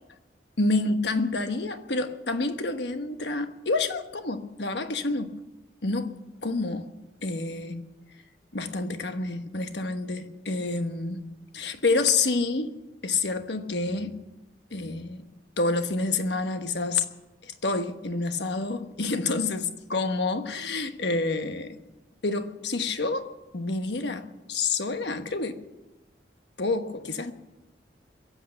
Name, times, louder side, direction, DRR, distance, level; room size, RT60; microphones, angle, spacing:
voice 1, 0.6-5.4 5.8-6.9 7.2-7.8 8.5-12.8 13.0-14.1 14.7-15.3 15.6-17.0 17.4-21.8 22.2-25.6 26.6-27.3, left 3 dB, 65° left, 1.2 m, -28 dB
22.5 x 8.3 x 7.7 m
head